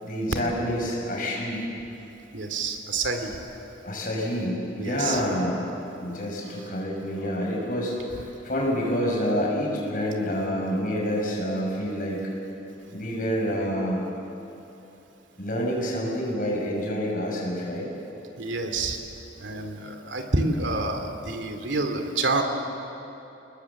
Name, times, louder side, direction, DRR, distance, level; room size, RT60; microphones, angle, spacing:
voice 1, 0.0-1.7 3.6-5.6 6.0-12.2 12.9-14.0 15.4-17.9, equal, 45° left, -2 dB, 6.3 m, -28 dB
voice 2, 2.3-3.3 4.8-5.2 18.4-19.0 19.4-22.4, right 3 dB, 85° right, 5 dB, 2.5 m, -28 dB
28.5 x 20.5 x 7.2 m, 2.9 s
head